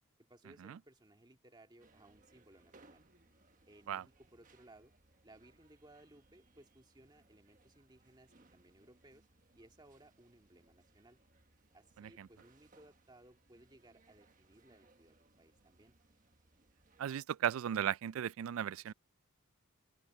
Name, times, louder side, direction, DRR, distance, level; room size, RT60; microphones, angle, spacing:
voice 1, 0.2-3.0 3.7-4.9 5.2-9.3 9.5-11.2 11.7-15.9, right 1 dB, 20° right, 2.0 m, -62 dB
sound 1, 1.8-17.1, right 2 dB, 40° right, 1.3 m, -68 dB
voice 2, 17.0-18.9, right 9 dB, 75° right, 0.3 m, -36 dB
open air
head